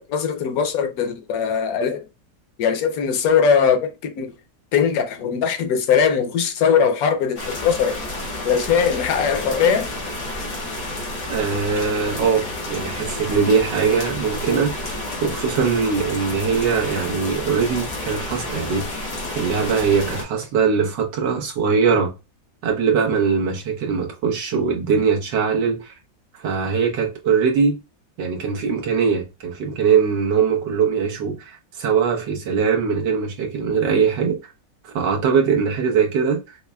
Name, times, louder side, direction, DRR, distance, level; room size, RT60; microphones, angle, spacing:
voice 1, 0.0-2.0 2.6-4.3 4.7-8.0 8.4-9.9, left 7 dB, 65° left, 1.1 m, -20 dB
sound 1, 7.4-20.2, left 2 dB, 85° left, 2.1 m, -30 dB
voice 2, 11.3-22.1 22.6-25.9 26.3-27.8 28.2-34.4 34.8-36.6, right 6 dB, 90° right, 1.6 m, -21 dB
5.5 x 2.1 x 2.2 m
omnidirectional pair, 1.8 m